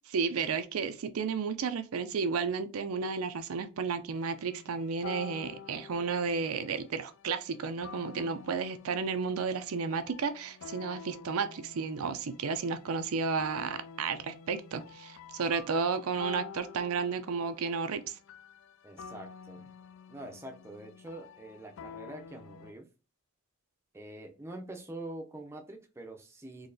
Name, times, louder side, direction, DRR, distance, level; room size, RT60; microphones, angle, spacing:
voice 1, 0.1-18.2, right 5 dB, 85° right, 0.5 m, -32 dB
sound 1, 4.1-22.7, left 6 dB, 65° left, 0.3 m, -49 dB
voice 2, 18.8-19.7 20.1-22.9 23.9-26.7, right 1 dB, 10° right, 0.5 m, -45 dB
3.9 x 2.8 x 2.7 m
head